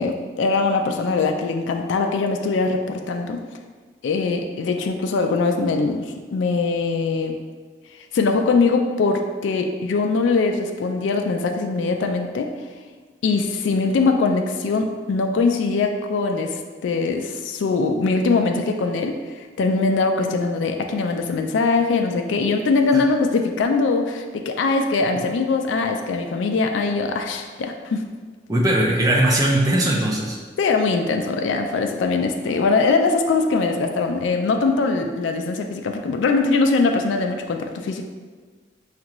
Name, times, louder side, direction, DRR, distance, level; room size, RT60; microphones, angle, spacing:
voice 1, 0.0-3.4 4.0-7.4 8.1-12.5 13.2-28.0 30.6-38.0, left 4 dB, 85° left, 4 dB, 0.3 m, -22 dB
voice 2, 28.5-30.4, right 1 dB, 20° right, -2 dB, 0.5 m, -19 dB
5.2 x 2.5 x 2.9 m, 1.4 s
head